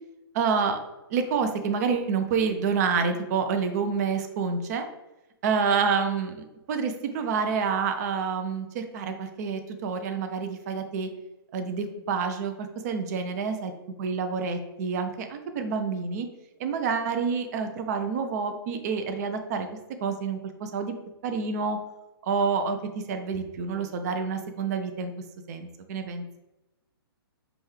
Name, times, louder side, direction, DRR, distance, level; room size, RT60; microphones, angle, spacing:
voice 1, 0.3-0.8 1.1-4.8 5.4-11.1 11.5-13.7 14.0-16.3 16.6-19.7 20.0-20.9 21.2-21.8 22.2-25.1 25.5-26.2, right 5 dB, 40° right, 7 dB, 0.5 m, -28 dB
5.0 x 2.4 x 3.2 m, 1.0 s
hypercardioid pair, 140°, 13 cm